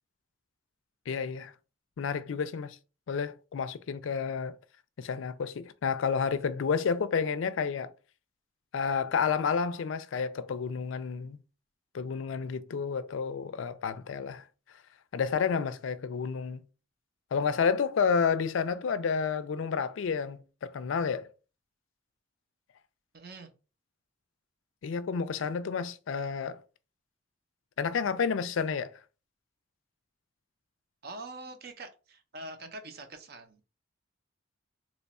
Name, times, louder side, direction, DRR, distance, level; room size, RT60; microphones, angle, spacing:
voice 1, 1.1-1.5 2.0-2.8 3.1-4.6 5.0-7.9 8.7-11.4 11.9-14.4 15.1-16.6 17.3-21.3 24.8-26.6 27.8-28.9, left 6 dB, 75° left, 0.4 m, -30 dB
voice 2, 23.1-23.5 31.0-33.6, right 2 dB, 50° right, 0.6 m, -44 dB
3.0 x 2.3 x 4.1 m
head